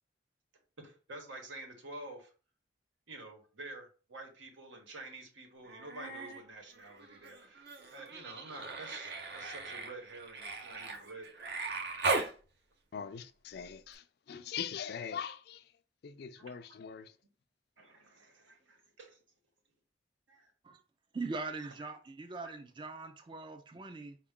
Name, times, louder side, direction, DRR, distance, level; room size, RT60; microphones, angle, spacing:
voice 1, 0.8-2.3 3.1-7.7 7.9-11.7 16.4-16.6 17.8-19.2 20.3-20.5 21.8-21.9 22.4-22.5, right 2 dB, 85° right, 1.1 m, -49 dB
Human voice, 5.6-6.4 6.7-12.3 13.9-14.0, right 3 dB, 60° right, 0.7 m, -38 dB
voice 2, 12.9-15.7 16.0-17.1, left 7 dB, 55° left, 0.3 m, -42 dB
voice 3, 21.1-24.2, right 3 dB, 25° right, 0.3 m, -41 dB
4.5 x 2.3 x 3.6 m
head